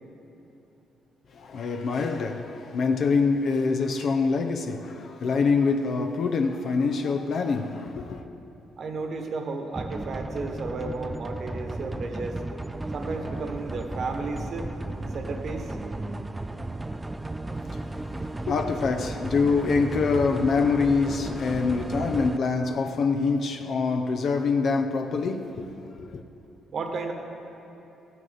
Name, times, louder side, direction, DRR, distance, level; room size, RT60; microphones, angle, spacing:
voice 1, 1.3-8.2 17.7-17.8 18.5-25.7 26.0-26.2, left 4 dB, 60° left, 0.6 m, -25 dB
voice 2, 8.8-12.4 12.9-14.7 15.1-15.8 26.7-27.1, right 3 dB, 55° right, 1.3 m, -33 dB
sound 1, 9.7-22.4, right 2 dB, 15° right, 0.3 m, -34 dB
14.5 x 9.4 x 4.1 m
cardioid pair, 90°, 0 cm